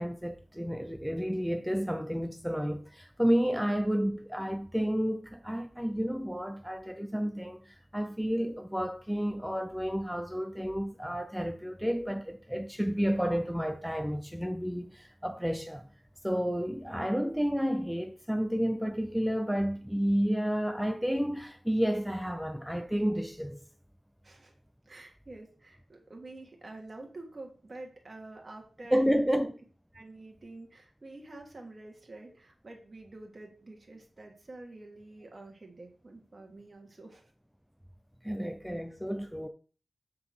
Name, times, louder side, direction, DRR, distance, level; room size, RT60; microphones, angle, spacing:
voice 1, 0.0-15.8 16.2-23.6 28.9-29.5 38.2-39.5, equal, ahead, 0.5 m, -31 dB
voice 2, 24.2-24.5 24.8-29.2 29.9-37.3, right 2 dB, 35° right, 1.7 m, -48 dB
7.6 x 4.0 x 6.0 m
wide cardioid pair, 135°, 0 cm